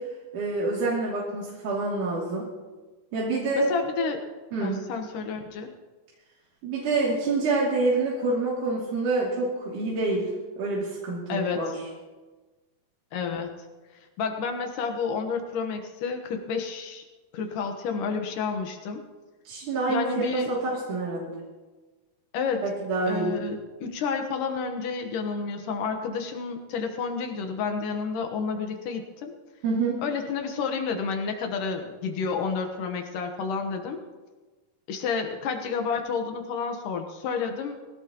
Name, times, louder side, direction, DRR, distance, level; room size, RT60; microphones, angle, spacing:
voice 1, 0.3-2.5 3.1-3.7 4.5-4.8 6.6-10.3 10.6-11.8 19.5-21.3 22.6-23.3 29.6-30.0, right 3 dB, 70° right, -6 dB, 4.2 m, -27 dB
voice 2, 3.6-4.2 4.6-5.7 11.3-11.6 13.1-13.5 14.2-17.0 17.3-19.0 19.9-20.5 22.3-22.6 23.1-29.3 30.0-34.0 34.9-37.8, left 5 dB, 80° left, 4 dB, 2.8 m, -30 dB
20.5 x 17.0 x 3.0 m, 1.3 s
omnidirectional pair, 3.7 m